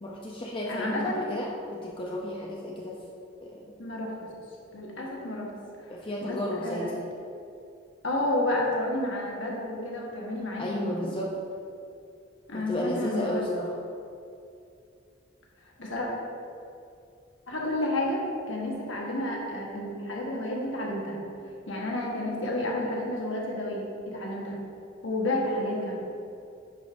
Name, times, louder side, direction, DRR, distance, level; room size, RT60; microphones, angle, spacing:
voice 1, 0.0-2.9 3.4-3.7 5.0-5.2 5.9-7.0 10.6-11.3 12.5-13.7, left 1 dB, 25° left, -3 dB, 0.5 m, -33 dB
voice 2, 0.6-1.3 3.8-4.1 4.7-5.5 5.8-5.9 6.2-6.9 8.0-11.1 12.5-13.4 15.8-16.1 17.5-21.2 21.7-24.6 25.0-25.9, left 1 dB, 70° left, -2 dB, 1.3 m, -31 dB
10.0 x 5.1 x 2.5 m, 2.5 s
head